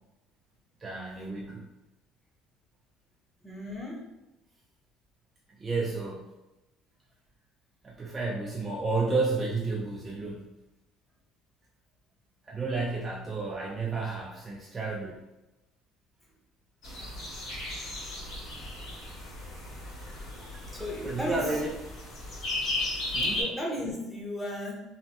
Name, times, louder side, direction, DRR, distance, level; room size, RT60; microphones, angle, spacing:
voice 1, 0.8-1.7 5.5-6.3 7.8-10.5 12.4-15.2 21.0-21.7 22.2-22.3 23.1-23.4, right 3 dB, 25° right, -2 dB, 0.4 m, -31 dB
voice 2, 3.4-4.0 20.4-21.6 23.3-24.8, left 1 dB, 5° left, -3 dB, 0.8 m, -35 dB
sound 1, 16.8-23.4, left 2 dB, 55° left, 1.3 m, -35 dB
3.1 x 2.0 x 2.8 m, 1.0 s
cardioid pair, 115°, 0 cm